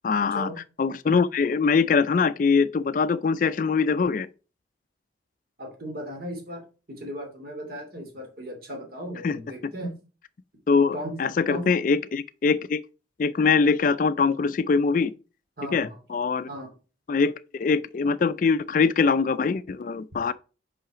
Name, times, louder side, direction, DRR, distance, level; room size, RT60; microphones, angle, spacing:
voice 1, 0.0-0.5 0.8-4.3 9.2-9.4 10.7-12.8 13.2-15.1 15.7-16.5 17.1-20.3, left 5 dB, 45° left, 0.3 m, -23 dB
voice 2, 5.6-9.9 10.9-11.2 11.5-11.7 15.6-16.0 16.5-16.7, equal, 50° right, 2.7 m, -36 dB
5.7 x 5.6 x 4.9 m
head